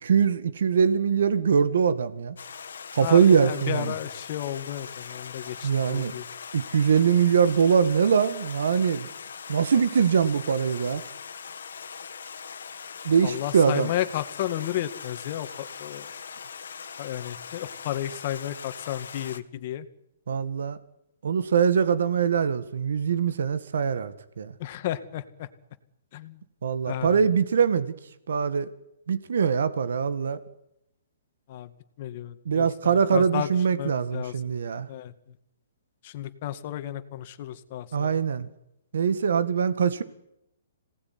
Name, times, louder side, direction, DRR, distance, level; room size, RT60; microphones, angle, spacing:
voice 1, 0.0-2.3 2.9-3.9 5.6-6.1 6.5-9.1 9.5-11.0 13.0-13.9 20.3-20.8 21.2-24.5 26.6-27.9 28.3-28.7 29.1-30.4 32.5-34.9 37.9-38.5 38.9-40.0, right 6 dB, 75° right, 12 dB, 1.9 m, -23 dB
Stream, 2.4-19.4, left 6 dB, 85° left, 2.0 m, -41 dB
voice 2, 3.0-6.2 13.2-16.1 17.0-19.9 24.6-25.5 26.1-26.4 26.9-27.2 31.5-31.7 32.0-34.4 34.9-35.1 36.0-38.2, left 12 dB, 40° left, 10 dB, 2.0 m, -33 dB
26.5 x 18.5 x 9.7 m, 0.83 s
hypercardioid pair, 160°, 0 cm